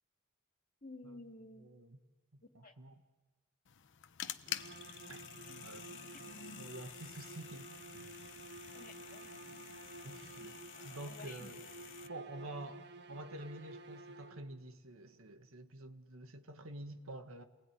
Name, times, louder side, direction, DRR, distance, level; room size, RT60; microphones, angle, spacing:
voice 1, 0.8-1.7 2.6-2.7 5.5-5.7 8.7-9.6 10.3-11.5 12.4-12.6, left 2 dB, 40° left, 2.5 m, -54 dB
voice 2, 1.6-2.0 2.3-3.0 5.1-5.2 5.6-5.9 6.4-8.1 10.0-10.6 10.8-11.6 12.0-17.4, right 1 dB, 75° right, 1.7 m, -49 dB
sound 1, 3.6-12.1, left 10 dB, 60° left, 1.0 m, -49 dB
sound 2, 4.5-14.7, right 3 dB, 55° right, 1.5 m, -52 dB
30.0 x 20.5 x 9.7 m
head